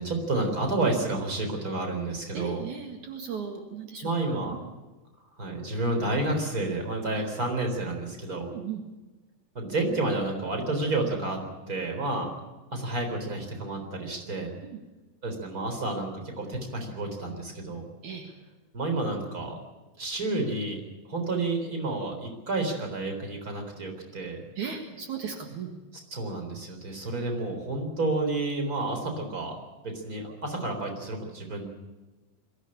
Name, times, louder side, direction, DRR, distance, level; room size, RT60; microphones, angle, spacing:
voice 1, 0.0-2.6 4.0-4.5 5.4-8.5 9.5-11.4 11.7-12.3 12.7-14.5 15.2-17.8 18.7-19.6 20.0-20.8 21.1-24.4 26.1-29.6 29.8-31.7, right 2 dB, 25° right, 3 dB, 4.2 m, -30 dB
voice 2, 2.3-4.7 8.4-8.8 14.6-14.8 18.0-18.3 24.6-25.7, right 6 dB, 70° right, 3 dB, 3.2 m, -37 dB
22.5 x 15.5 x 8.7 m, 1.2 s
omnidirectional pair, 3.6 m